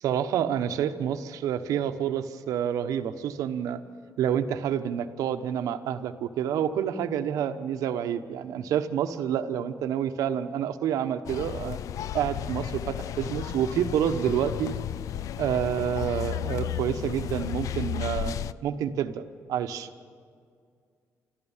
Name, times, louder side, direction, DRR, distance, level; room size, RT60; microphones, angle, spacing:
voice 1, 0.0-3.8 4.2-11.8 12.1-14.7 15.4-18.3 18.6-19.2 19.5-19.9, right 9 dB, 85° right, 9 dB, 1.0 m, -28 dB
sound 1, 11.3-18.5, left 10 dB, 75° left, 0.4 m, -33 dB
27.0 x 13.5 x 7.3 m, 2.2 s
cardioid pair, 80°, 6 cm